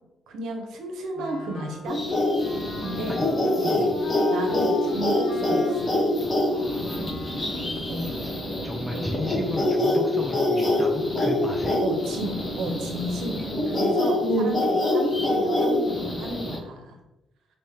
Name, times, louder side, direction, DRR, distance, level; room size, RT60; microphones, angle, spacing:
voice 1, 0.3-2.0 2.8-3.2 3.6-4.0 4.3-5.9 7.9-8.1 8.9-9.1 11.8-17.0, right 1 dB, 80° right, 3 dB, 0.6 m, -33 dB
Wind instrument woodwind instrument, 1.1-7.7, left 3 dB, 70° left, 0.4 m, -38 dB
sound 1, 1.9-16.6, left 1 dB, 25° left, 0.9 m, -25 dB
voice 2, 6.5-7.0 8.2-8.3 8.6-11.8, left 1 dB, 5° left, 0 dB, 0.3 m, -34 dB
3.5 x 2.1 x 2.7 m, 0.95 s
cardioid pair, 90°, 0 cm